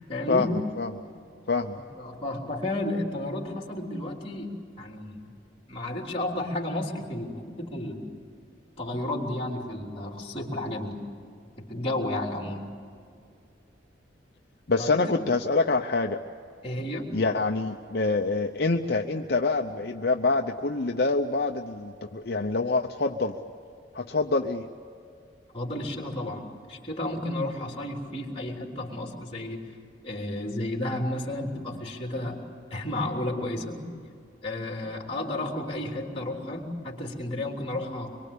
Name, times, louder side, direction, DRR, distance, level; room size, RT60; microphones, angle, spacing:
voice 1, 0.1-0.6 2.0-4.5 4.8-5.2 5.7-8.0 8.8-11.0 11.6-12.7 14.8-15.2 16.6-17.1 25.5-26.4 26.7-29.6 30.0-32.4 32.7-33.9 34.4-38.1, left 1 dB, 30° left, 1 dB, 3.3 m, -32 dB
voice 2, 14.7-16.2 17.1-23.3 23.9-24.7, left 3 dB, 55° left, 4 dB, 0.8 m, -26 dB
25.0 x 23.0 x 8.5 m, 2.4 s
head